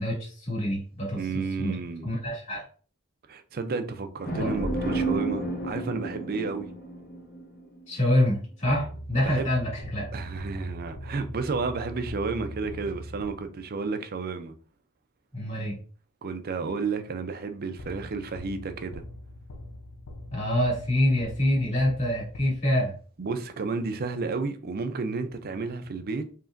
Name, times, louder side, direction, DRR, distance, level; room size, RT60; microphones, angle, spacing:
voice 1, 0.0-1.2 1.6-1.7 2.0-2.6 4.3-4.5 7.9-10.1 15.3-15.8 20.3-22.9, left 1 dB, 30° left, 2.2 m, -26 dB
voice 2, 1.1-2.1 3.3-6.7 9.2-9.5 10.1-14.5 16.2-19.0 23.2-26.2, right 4 dB, 45° right, 0.5 m, -31 dB
sound 1, 4.2-7.9, right 2 dB, 45° left, 1.0 m, -31 dB
sound 2, 8.6-13.8 17.8-23.0, equal, 85° left, 0.7 m, -41 dB
4.9 x 3.0 x 2.5 m
head